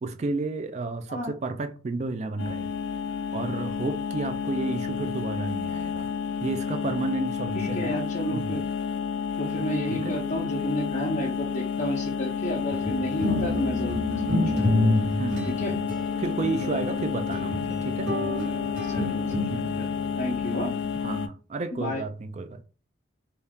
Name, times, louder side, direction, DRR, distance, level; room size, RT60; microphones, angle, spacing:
voice 1, 0.0-2.7 3.3-6.1 6.4-8.0 8.3-8.6 9.9-10.2 14.8-15.9 16.2-18.1 19.4-19.8 21.0-22.6, right 3 dB, 35° right, 0.3 m, -32 dB
sound 1, 2.4-21.3, left 6 dB, 80° left, 0.4 m, -30 dB
voice 2, 7.5-8.6 9.4-14.8 15.4-15.7 18.9-19.9 20.1-20.7 21.7-22.0, equal, 40° left, 0.7 m, -31 dB
sound 2, 12.7-20.9, left 1 dB, 60° right, 1.2 m, -29 dB
2.7 x 2.4 x 3.4 m
head